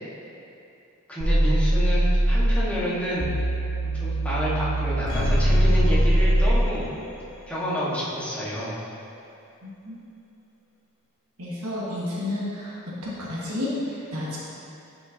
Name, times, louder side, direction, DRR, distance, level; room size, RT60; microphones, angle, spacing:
voice 1, 1.1-3.3 3.8-6.9 7.5-8.8, equal, 5° left, -9 dB, 1.6 m, -29 dB
sound 1, 1.2-2.7 3.2-6.7, right 1 dB, 50° right, 1.0 m, -21 dB
sound 2, 5.1-7.2 7.6-7.7, left 1 dB, 65° left, 1.2 m, -28 dB
voice 2, 11.4-12.7 13.0-13.7 14.1-14.4, left 1 dB, 75° right, -7 dB, 1.5 m, -30 dB
9.9 x 5.3 x 2.9 m, 2.7 s
head